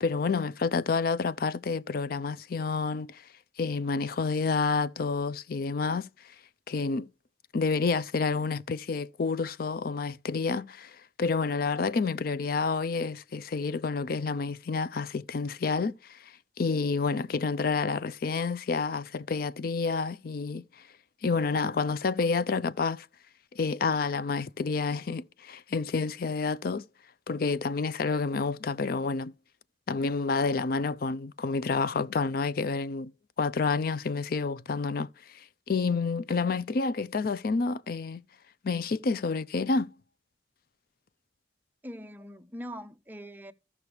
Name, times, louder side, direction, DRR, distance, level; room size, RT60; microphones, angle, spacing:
voice 1, 0.0-3.2 3.6-6.1 6.7-7.1 7.5-20.6 21.2-23.1 23.5-26.8 27.3-29.3 29.9-33.1 33.4-35.1 35.3-38.2 38.6-39.9, left 4 dB, 55° left, 0.4 m, -29 dB
voice 2, 41.8-43.5, equal, 10° right, 0.6 m, -42 dB
14.5 x 5.9 x 3.2 m
head